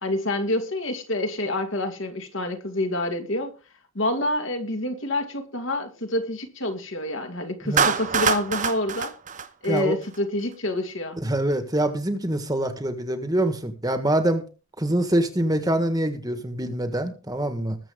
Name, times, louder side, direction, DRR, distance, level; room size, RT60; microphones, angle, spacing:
voice 1, 0.0-3.5 3.9-9.1 9.6-11.2, left 1 dB, 60° left, 5 dB, 2.6 m, -27 dB
Clapping, 7.8-10.2, right 6 dB, 35° right, 0.9 m, -25 dB
voice 2, 11.2-14.5 14.8-17.8, right 1 dB, 15° right, 8 dB, 1.6 m, -25 dB
20.5 x 7.6 x 3.8 m, 0.33 s
head